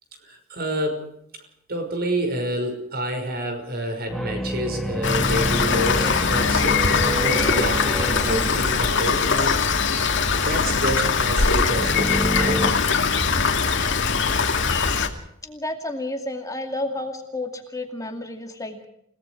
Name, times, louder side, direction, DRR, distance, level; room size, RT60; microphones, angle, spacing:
voice 1, 0.2-1.1 1.7-9.6 10.4-12.6, right 1 dB, 50° right, 6 dB, 5.7 m, -28 dB
sound 1, 4.1-9.5 11.7-12.7, equal, ahead, 1.7 m, -28 dB
Rain, 5.0-15.1, left 5 dB, 60° left, 2.5 m, -21 dB
voice 2, 15.4-18.9, left 2 dB, 15° left, 4 dB, 2.3 m, -31 dB
30.0 x 18.0 x 4.9 m, 0.75 s
head